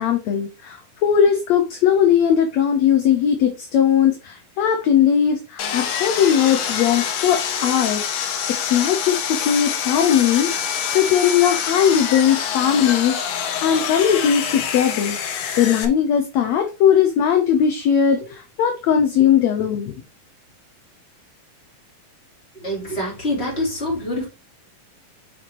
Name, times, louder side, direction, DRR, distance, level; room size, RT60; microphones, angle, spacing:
voice 1, 0.0-8.0 8.6-10.5 10.9-19.9, left 8 dB, 65° left, 1.9 m, -19 dB
Sawing, 5.6-15.9, left 8 dB, 80° left, 2.9 m, -26 dB
voice 2, 22.6-24.3, left 1 dB, 15° left, 4.2 m, -25 dB
7.3 x 6.4 x 3.1 m
omnidirectional pair, 3.9 m